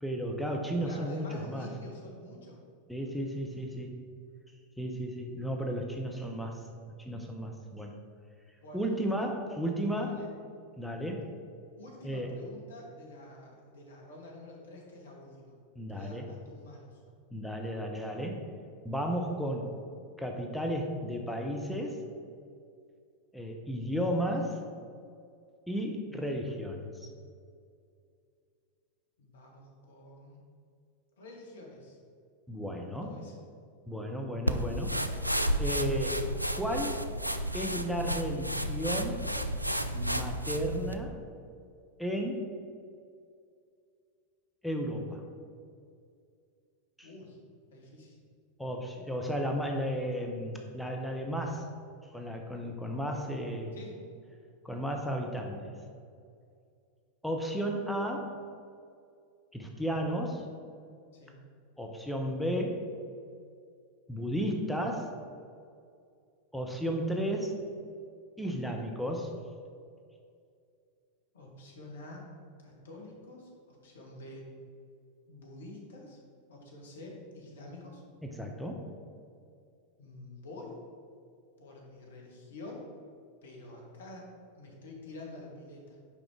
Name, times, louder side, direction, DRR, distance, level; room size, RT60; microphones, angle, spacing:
voice 1, 0.0-1.7 2.9-3.9 4.8-6.6 7.0-7.9 8.7-10.2 10.8-11.3 12.0-12.3 15.8-16.3 17.3-18.4 18.8-19.7 20.2-22.0 23.3-24.6 25.7-27.1 32.5-33.2 33.9-35.0 35.6-36.2 36.5-37.0 37.5-39.2 39.9-41.2 42.0-42.5 44.6-45.2 47.0-47.1 48.6-51.7 52.1-53.8 54.6-55.7 57.2-58.4 59.5-60.4 61.8-62.8 64.1-65.1 66.5-67.5 68.4-69.3 78.2-78.9, equal, ahead, 1 dB, 0.7 m, -33 dB
voice 2, 0.8-2.6 3.6-3.7 8.6-8.9 10.0-10.3 11.8-15.6 15.9-17.0 29.2-30.4 31.2-32.0 32.7-33.3 47.0-47.4 47.7-48.2 53.7-54.0 61.1-61.4 71.3-72.2 72.6-74.5 75.3-76.2 76.5-78.0 80.0-80.8 81.6-82.9 83.4-84.3 84.6-86.0, left 2 dB, 65° left, -2 dB, 1.6 m, -48 dB
sound 1, 34.5-41.0, equal, 90° right, 0.3 m, -32 dB
6.0 x 5.1 x 4.8 m, 2.3 s
figure-of-eight pair, 90°, 0 cm